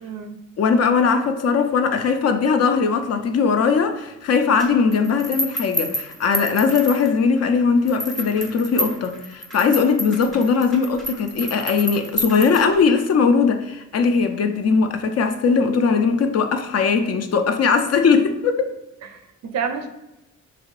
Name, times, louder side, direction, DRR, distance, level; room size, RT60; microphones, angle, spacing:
voice 1, 0.0-0.4 19.0-19.9, right 6 dB, 50° right, 7 dB, 0.4 m, -29 dB
voice 2, 0.6-18.7, left 5 dB, 45° left, 7 dB, 0.4 m, -19 dB
sound 1, 4.6-7.4 7.9-13.0, right 1 dB, ahead, 0.8 m, -30 dB
2.9 x 2.7 x 3.0 m, 0.97 s
hypercardioid pair, 50°, 36 cm